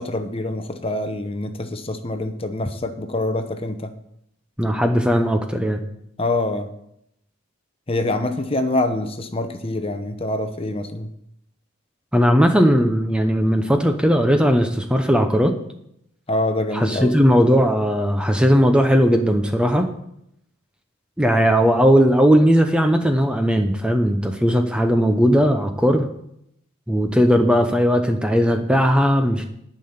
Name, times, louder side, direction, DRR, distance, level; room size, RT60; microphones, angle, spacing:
voice 1, 0.0-3.9 6.2-6.7 7.9-11.1 16.3-17.2, left 2 dB, 25° left, 8 dB, 0.8 m, -25 dB
voice 2, 4.6-5.8 12.1-15.5 16.7-19.9 21.2-26.1 26.9-29.4, equal, 5° right, 5 dB, 0.7 m, -17 dB
11.0 x 5.8 x 8.7 m, 0.75 s
head